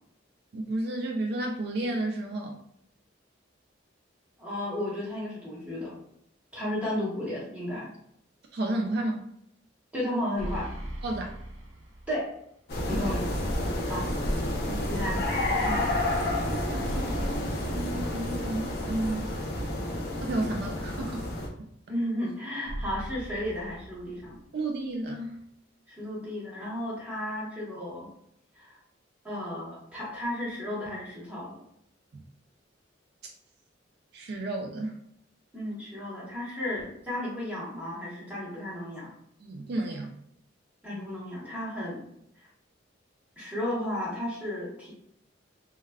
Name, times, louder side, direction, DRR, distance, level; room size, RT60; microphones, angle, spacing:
voice 1, 0.5-2.6 8.5-9.2 11.0-11.3 12.9-13.1 14.7-15.0 16.4-19.3 20.2-21.3 24.5-25.4 32.1-32.2 34.1-35.0 39.4-40.1, right 2 dB, 55° right, 1 dB, 0.3 m, -32 dB
voice 2, 4.4-5.9 6.5-7.9 9.9-10.7 12.1-12.3 12.9-13.3 13.8-14.1 14.7-15.2 15.6-15.8 21.9-24.4 25.9-28.1 28.5-28.7 29.2-31.6 35.5-39.1 40.8-42.1 43.4-44.9, left 1 dB, 10° right, -7 dB, 1.0 m, -33 dB
sound 1, 10.4-12.4 12.7-12.8 16.8-18.8 22.7-24.6, right 1 dB, 90° right, 0.6 m, -40 dB
sound 2, 12.7-21.5, left 1 dB, 55° left, 0.6 m, -30 dB
3.2 x 2.3 x 2.2 m, 0.73 s
head